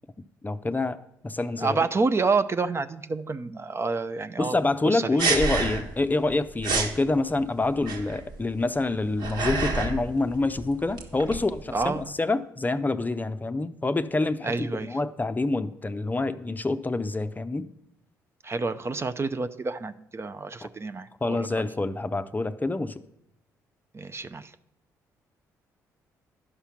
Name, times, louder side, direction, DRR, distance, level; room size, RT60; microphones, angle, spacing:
voice 1, 0.4-1.0 1.2-1.8 4.4-17.7 20.6-20.7 21.2-23.0, left 2 dB, 20° left, 11 dB, 0.6 m, -27 dB
voice 2, 1.6-5.1 11.7-12.1 14.4-15.0 18.4-21.6 23.9-24.5, right 4 dB, 30° right, 11 dB, 0.6 m, -28 dB
sound 1, 5.2-6.0 6.3-6.4 6.6-7.0 7.8-8.3 8.9-10.1 10.3-12.0, right 3 dB, 65° right, 1.5 m, -28 dB
11.0 x 5.6 x 5.8 m, 0.78 s
hypercardioid pair, 45°, 9 cm